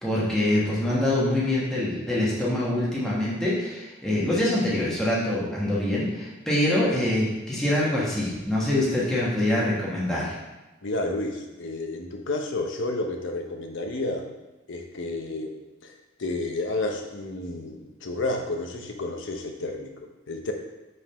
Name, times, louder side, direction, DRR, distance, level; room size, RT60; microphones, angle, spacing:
voice 1, 0.0-10.3, left 1 dB, 5° left, -7 dB, 1.2 m, -25 dB
voice 2, 10.8-14.3 14.7-15.5 15.8-20.5, left 2 dB, 60° left, 3 dB, 0.8 m, -31 dB
5.4 x 3.6 x 5.4 m, 1.1 s
head